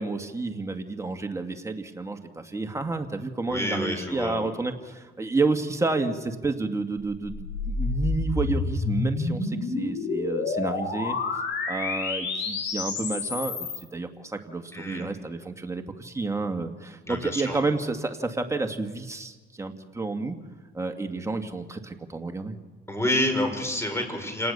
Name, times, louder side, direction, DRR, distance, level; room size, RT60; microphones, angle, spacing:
voice 1, 0.0-11.2 11.7-20.4 20.7-22.6, right 3 dB, 15° right, 4 dB, 2.1 m, -30 dB
voice 2, 3.5-4.5 14.7-15.1 17.1-17.6 22.9-24.5, left 1 dB, 15° left, 5 dB, 5.7 m, -28 dB
sound 1, 7.0-13.8, left 3 dB, 70° left, 7.1 m, -29 dB
28.5 x 18.5 x 7.0 m, 1.3 s
cardioid pair, 90°, 20 cm